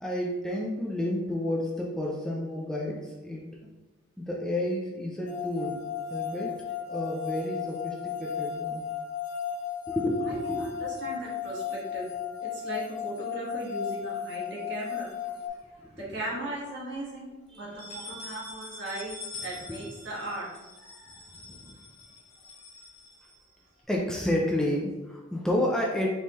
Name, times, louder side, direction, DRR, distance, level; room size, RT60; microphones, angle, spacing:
voice 1, 0.0-3.4 4.2-5.9 6.1-6.6 6.9-8.8 9.9-10.6 15.8-16.0 17.5-17.7 18.0-18.1 19.7-19.8 20.9-21.7 23.9-26.1, left 1 dB, 5° left, -2 dB, 0.4 m, -31 dB
sound 1, 5.3-15.5, left 8 dB, 80° left, 0.7 m, -35 dB
voice 2, 10.2-12.1 12.4-15.1 16.0-19.2 19.4-20.5, right 1 dB, 60° right, -6 dB, 1.4 m, -37 dB
sound 2, 15.1-16.0 16.5-16.6 16.9-17.0 17.6-23.8, left 3 dB, 30° left, 0.8 m, -45 dB
4.1 x 3.6 x 3.0 m, 1.1 s
head